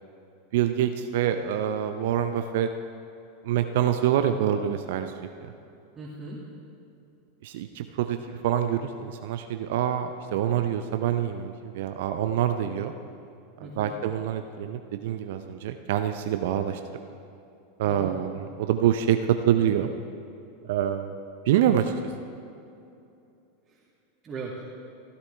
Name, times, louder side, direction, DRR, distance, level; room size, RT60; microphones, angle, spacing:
voice 1, 0.5-2.7 3.4-5.1 5.4-5.5 7.4-12.9 13.8-16.8 17.8-19.2 19.5-19.9 20.6-21.2 21.5-21.9, right 10 dB, 65° right, 8 dB, 0.5 m, -26 dB
voice 2, 6.0-6.4 13.6-14.0 17.8-18.2 23.7-23.8 24.2-24.8, right 3 dB, 30° right, -5 dB, 2.0 m, -39 dB
16.0 x 11.0 x 3.3 m, 2.7 s
hypercardioid pair, 90°, 0 cm